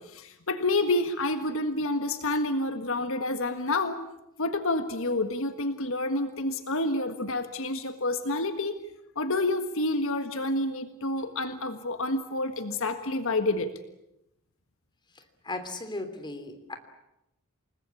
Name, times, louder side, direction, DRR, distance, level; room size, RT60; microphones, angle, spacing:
voice 1, 0.0-4.0 4.4-8.8 9.2-13.7, left 2 dB, 70° left, 8 dB, 1.6 m, -28 dB
voice 2, 15.4-16.8, left 2 dB, 20° left, 7 dB, 3.2 m, -36 dB
29.0 x 20.0 x 8.5 m, 0.87 s
head